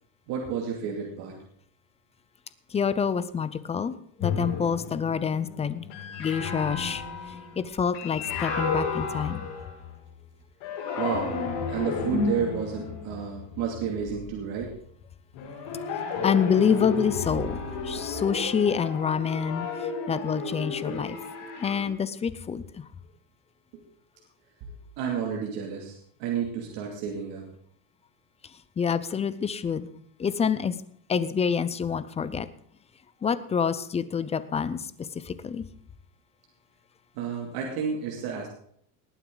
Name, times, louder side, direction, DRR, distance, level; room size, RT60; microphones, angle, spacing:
voice 1, 0.3-1.4 11.0-11.3 11.7-14.7 25.0-27.5 37.1-38.5, right 7 dB, 60° right, 0 dB, 2.6 m, -31 dB
voice 2, 2.7-5.9 6.2-7.0 7.6-9.5 16.2-17.6 17.8-19.7 20.1-21.2 21.6-22.8 28.8-29.9 30.2-30.7 31.1-32.5 33.2-34.8 35.3-35.6, left 7 dB, 15° left, 15 dB, 0.5 m, -27 dB
sound 1, 4.2-10.1 10.6-14.5 15.3-21.9, left 5 dB, 75° left, 6.0 m, -33 dB
19.5 x 9.2 x 3.9 m, 0.66 s
cardioid pair, 140°, 43 cm